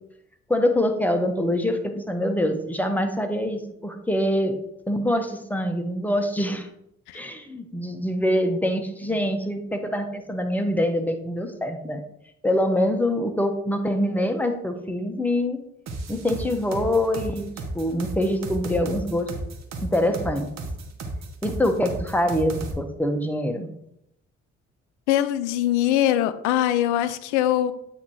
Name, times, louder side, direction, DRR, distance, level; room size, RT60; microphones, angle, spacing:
voice 1, 0.5-4.6 4.9-6.7 7.1-12.0 12.4-15.6 16.1-19.3 19.8-20.5 21.4-23.7, left 1 dB, 5° left, 5 dB, 1.1 m, -24 dB
sound 1, 15.9-22.7, right 2 dB, 50° right, 1.2 m, -33 dB
voice 2, 25.1-27.7, left 12 dB, 80° left, 13 dB, 0.5 m, -22 dB
8.5 x 2.9 x 4.7 m, 0.77 s
hypercardioid pair, 50°, 34 cm